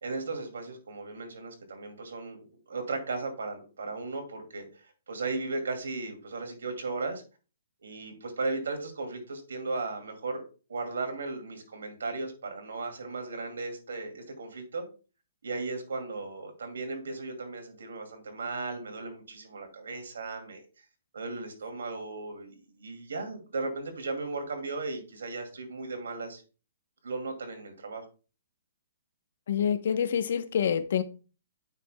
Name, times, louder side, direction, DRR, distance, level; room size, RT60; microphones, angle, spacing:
voice 1, 0.0-7.2 7.8-10.4 10.7-14.8 15.4-20.6 21.1-26.4 27.0-28.1, right 3 dB, 85° right, 5 dB, 2.4 m, -36 dB
voice 2, 29.5-31.0, left 8 dB, 60° left, 11 dB, 0.9 m, -27 dB
9.2 x 6.0 x 2.2 m, 0.34 s
hypercardioid pair, 155°, 0 cm